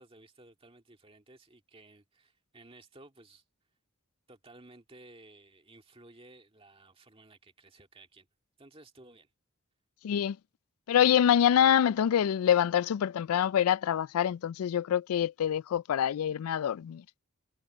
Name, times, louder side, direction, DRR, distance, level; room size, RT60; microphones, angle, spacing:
voice 1, 0.0-3.4 4.3-8.3 8.6-9.3, right 2 dB, 25° right, 2.0 m, -56 dB
voice 2, 10.0-10.4 10.9-17.0, left 9 dB, 85° left, 0.3 m, -25 dB
head